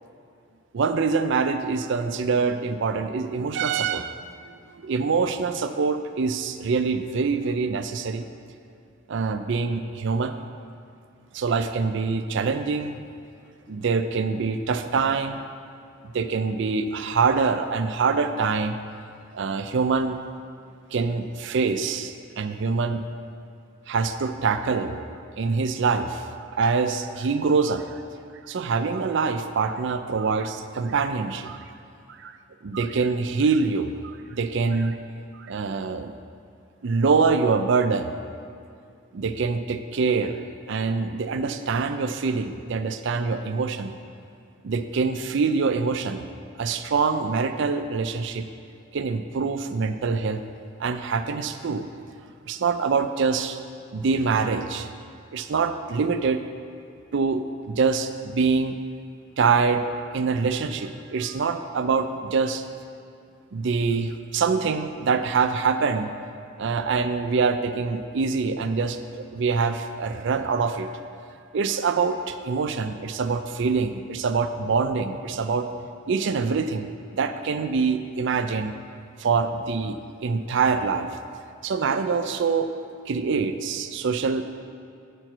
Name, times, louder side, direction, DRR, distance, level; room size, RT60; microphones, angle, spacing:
voice 1, 0.7-4.2 4.8-8.3 9.1-10.4 11.3-13.0 13.7-15.4 16.0-18.8 19.3-20.2 20.9-23.0 23.9-25.0 25.4-26.2 26.6-28.0 28.5-31.6 32.1-32.3 32.6-35.0 35.4-36.1 36.8-38.1 39.1-40.4 40.7-44.0 44.6-46.3 46.6-48.5 48.9-50.4 50.8-51.9 52.5-53.6 53.9-54.9 55.3-56.4 57.1-58.8 59.4-59.8 60.1-62.6 63.5-66.1 66.6-70.9 71.5-75.7 76.1-76.9 77.1-78.7 79.2-81.1 81.6-82.7 83.1-84.4, right 5 dB, 60° right, 9 dB, 0.4 m, -25 dB
8.8 x 4.5 x 6.0 m, 2.5 s
head